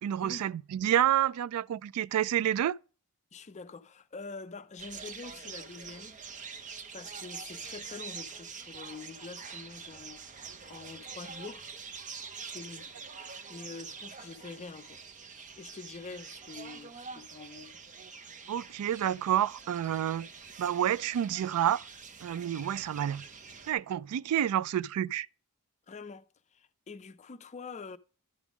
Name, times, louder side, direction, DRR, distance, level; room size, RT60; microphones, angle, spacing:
voice 1, 0.0-2.8 18.5-20.3 20.6-21.8 22.2-23.2 23.7-25.3, right 10 dB, 75° right, 0.3 m, -29 dB
voice 2, 3.3-6.2 6.9-11.7 12.4-12.9 13.5-15.0 15.6-17.8 25.9-28.0, left 4 dB, 30° left, 0.5 m, -46 dB
sound 1, 4.8-23.7, right 5 dB, 35° right, 0.7 m, -45 dB
11.0 x 3.6 x 6.0 m
head